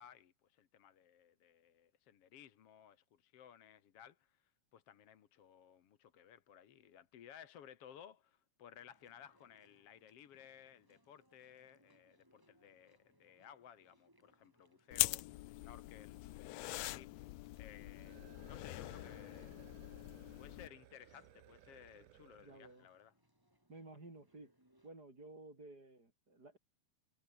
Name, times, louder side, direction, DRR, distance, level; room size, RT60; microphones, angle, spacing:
voice 1, 0.0-16.2 16.5-19.6 20.4-23.1, left 9 dB, 55° left, 2.3 m, -59 dB
Chewing mastication, 8.8-24.9, right 1 dB, 5° right, 5.5 m, -74 dB
sound 1, 14.9-20.7, left 19 dB, 80° left, 1.7 m, -42 dB
sound 2, 17.8-22.8, right 13 dB, 90° right, 2.7 m, -62 dB
voice 2, 22.4-22.9 23.7-24.5 24.8-26.6, right 2 dB, 30° right, 6.1 m, -55 dB
omnidirectional pair, 3.5 m